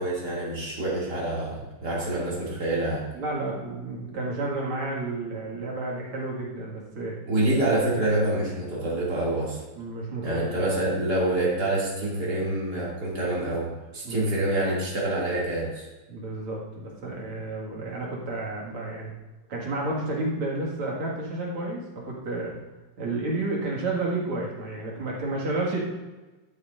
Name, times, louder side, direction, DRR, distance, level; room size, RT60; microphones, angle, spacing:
voice 1, 0.0-3.0 7.3-9.6 10.2-15.8, right 1 dB, 50° right, -6 dB, 3.2 m, -26 dB
voice 2, 3.1-7.2 9.8-10.6 14.0-14.3 16.1-19.1 19.5-22.6 23.0-25.9, right 2 dB, 85° right, -4 dB, 2.9 m, -31 dB
12.5 x 7.3 x 2.6 m, 1.2 s
omnidirectional pair, 2.4 m